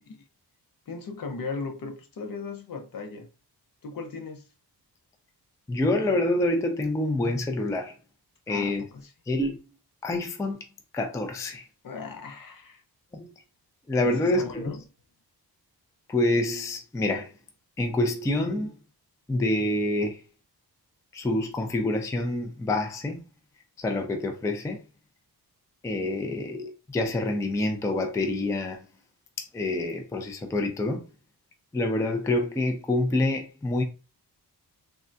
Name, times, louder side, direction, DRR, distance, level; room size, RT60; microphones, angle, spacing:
voice 1, 0.9-3.3 3.8-4.5 8.5-9.1 11.8-12.8 14.0-14.8, left 4 dB, 60° left, 0.7 m, -37 dB
voice 2, 5.7-7.9 8.5-8.8 9.3-9.6 10.0-10.7 10.9-11.7 13.1-13.3 13.9-14.6 16.1-17.3 17.8-18.7 19.3-20.2 21.1-23.2 23.8-24.8 25.8-28.8 29.4-31.0 31.7-33.8, left 2 dB, 10° left, 0.3 m, -27 dB
3.5 x 2.1 x 2.5 m
wide cardioid pair, 145°, 39 cm